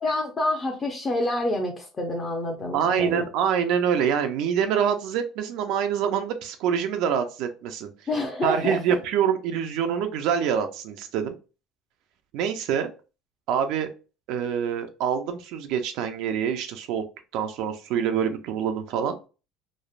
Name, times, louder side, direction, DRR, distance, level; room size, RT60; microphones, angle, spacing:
voice 1, 0.0-3.3 8.1-9.0, left 1 dB, 25° left, 0 dB, 0.6 m, -27 dB
voice 2, 2.7-7.9 8.4-11.3 12.3-12.9 13.5-13.9 14.3-17.0 17.3-19.2, right 8 dB, 70° right, 6 dB, 0.3 m, -25 dB
3.0 x 2.0 x 2.4 m, 0.33 s
supercardioid pair, 105°, 0 cm